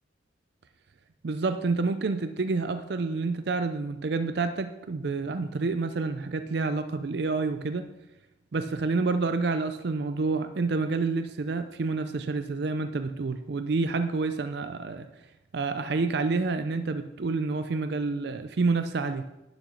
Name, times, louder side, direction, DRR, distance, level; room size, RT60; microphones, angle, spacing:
voice 1, 1.2-7.9 8.5-15.1 15.5-19.2, right 3 dB, 60° right, 10 dB, 0.5 m, -28 dB
9.9 x 6.1 x 6.3 m, 0.94 s
head